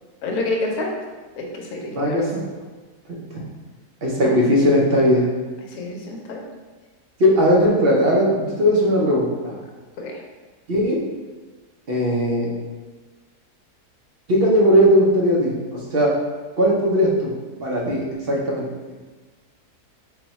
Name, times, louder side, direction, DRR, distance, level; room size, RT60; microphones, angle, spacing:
voice 1, 0.2-0.9 1.4-2.2 4.2-4.3 5.6-6.4 10.0-10.2, left 2 dB, 70° left, 0 dB, 1.1 m, -28 dB
voice 2, 1.9-2.4 3.3-3.4 4.0-5.3 7.2-9.5 10.7-11.0 11.9-12.5 14.3-15.5 15.9-16.1 16.6-17.3 17.6-18.6, equal, 55° right, -3 dB, 0.6 m, -18 dB
4.0 x 2.2 x 4.0 m, 1.3 s
omnidirectional pair, 1.7 m